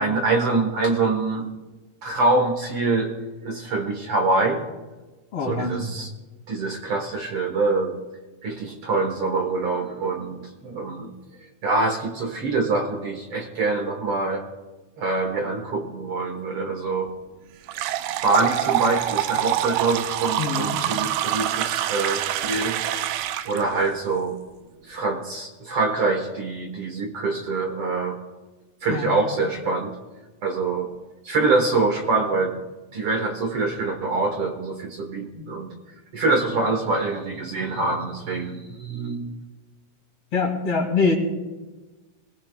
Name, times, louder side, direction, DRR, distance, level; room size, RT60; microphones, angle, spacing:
voice 1, 0.0-1.5 2.0-3.1 3.4-4.6 5.4-6.1 6.5-8.0 8.4-11.1 11.6-14.4 15.0-17.1 18.2-22.8 23.4-24.4 24.9-28.2 28.8-30.0 30.4-30.8 31.2-32.6 32.9-35.7 36.1-39.3, right 3 dB, 65° right, 3 dB, 1.4 m, -25 dB
voice 2, 5.3-6.0 20.4-20.8 28.9-29.2 40.3-41.2, left 4 dB, 45° left, 0 dB, 2.7 m, -24 dB
sound 1, 17.7-23.6, right 12 dB, 90° right, 2.7 m, -26 dB
23.5 x 19.0 x 2.3 m, 1.2 s
omnidirectional pair, 4.6 m